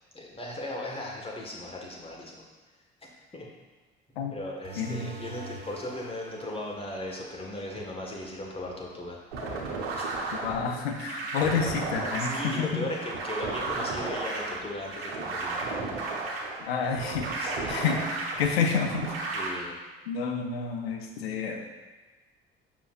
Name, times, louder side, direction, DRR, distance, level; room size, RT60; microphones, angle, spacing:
voice 1, 0.1-2.4 3.3-3.5 4.3-9.2 10.0-10.1 12.2-15.6 17.4-17.8 19.3-19.8, left 1 dB, 20° left, -2 dB, 1.6 m, -37 dB
sound 1, 4.6-9.8, right 2 dB, 60° right, 1.9 m, -47 dB
voice 2, 4.8-5.1 10.4-12.9 16.6-19.1 20.1-21.6, left 5 dB, 80° left, 3 dB, 0.7 m, -29 dB
sound 2, 9.3-19.5, right 3 dB, 75° right, 1.1 m, -34 dB
7.1 x 5.8 x 2.5 m, 1.3 s
figure-of-eight pair, 50°, 31 cm